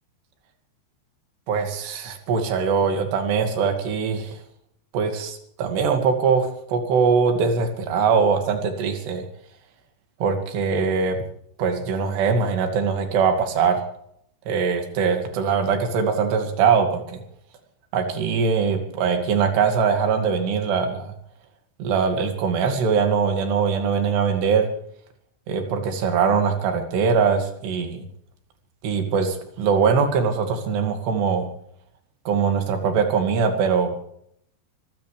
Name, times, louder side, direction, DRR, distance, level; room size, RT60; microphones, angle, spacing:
voice 1, 1.5-4.3 4.9-9.2 10.2-11.2 11.6-13.8 14.5-17.2 17.9-21.1 21.8-24.7 25.5-28.0 28.8-31.5 32.3-34.0, right 5 dB, 75° right, 5 dB, 4.4 m, -22 dB
25.0 x 16.5 x 3.4 m, 0.70 s
omnidirectional pair, 5.0 m